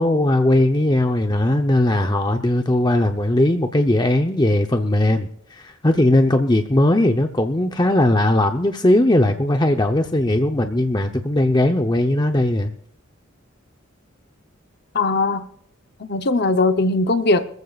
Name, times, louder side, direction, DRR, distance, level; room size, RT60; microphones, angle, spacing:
voice 1, 0.0-12.7, left 1 dB, 20° left, 5 dB, 0.8 m, -18 dB
voice 2, 14.9-15.4 16.0-17.4, left 3 dB, 50° left, 9 dB, 0.9 m, -19 dB
25.5 x 15.0 x 2.5 m, 0.66 s
head